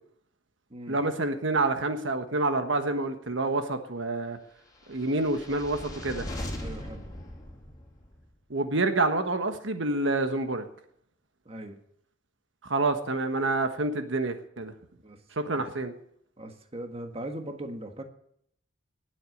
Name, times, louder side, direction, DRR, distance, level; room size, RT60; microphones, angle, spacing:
voice 1, 0.9-4.4 4.9-6.3 8.5-10.6 12.6-14.7 15.4-15.9, right 2 dB, 70° right, 7 dB, 1.4 m, -28 dB
sound 1, 4.8-8.3, left 1 dB, 20° left, 3.6 m, -39 dB
voice 2, 6.6-7.0 11.4-11.8 15.0-15.2 15.5-15.6 16.4-18.0, right 1 dB, 30° right, 5 dB, 1.6 m, -39 dB
19.5 x 8.0 x 6.5 m, 0.69 s
head